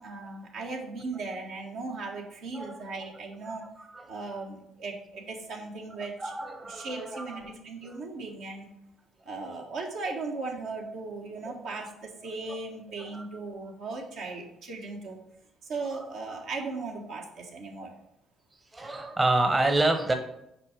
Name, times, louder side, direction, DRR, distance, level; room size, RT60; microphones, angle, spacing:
voice 1, 0.0-3.6 4.1-6.3 6.6-8.7 9.2-15.2 15.6-17.9, right 3 dB, 70° right, 0 dB, 1.4 m, -37 dB
voice 2, 6.2-7.5 7.9-8.0 11.5-11.6 12.5-12.6 13.1-13.2 15.9-16.0 18.7-20.1, right 2 dB, 25° right, 5 dB, 1.0 m, -28 dB
5.9 x 4.6 x 5.0 m, 0.80 s
hypercardioid pair, 65°, 0 cm